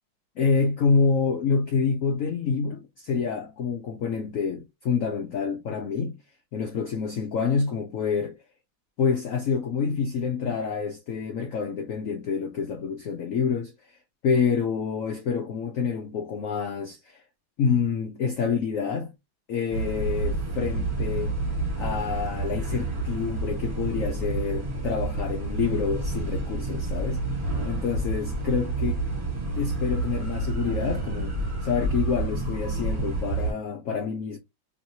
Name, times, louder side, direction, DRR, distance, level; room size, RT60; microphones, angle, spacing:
voice 1, 0.4-6.2 6.5-8.4 9.0-14.0 14.2-17.2 17.6-19.1 19.5-21.4 21.8-29.0 29.5-31.4 31.6-34.4, left 5 dB, 65° left, 0.8 m, -27 dB
sound 1, 19.7-33.5, right 2 dB, 30° right, 1.5 m, -29 dB
3.1 x 2.9 x 2.7 m
omnidirectional pair, 2.1 m